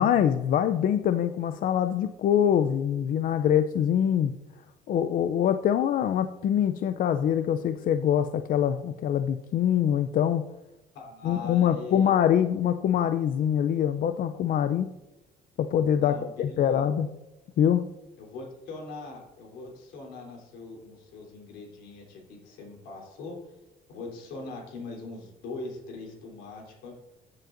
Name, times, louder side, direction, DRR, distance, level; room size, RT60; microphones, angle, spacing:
voice 1, 0.0-4.4 4.9-10.4 11.2-14.9 15.6-17.1 17.6-17.8, left 9 dB, 55° left, 10 dB, 0.5 m, -24 dB
voice 2, 10.9-12.1 16.0-16.8 18.2-23.4 23.9-26.9, left 3 dB, 85° left, -1 dB, 3.5 m, -41 dB
15.0 x 7.6 x 2.6 m, 0.95 s
cardioid pair, 110°, 17 cm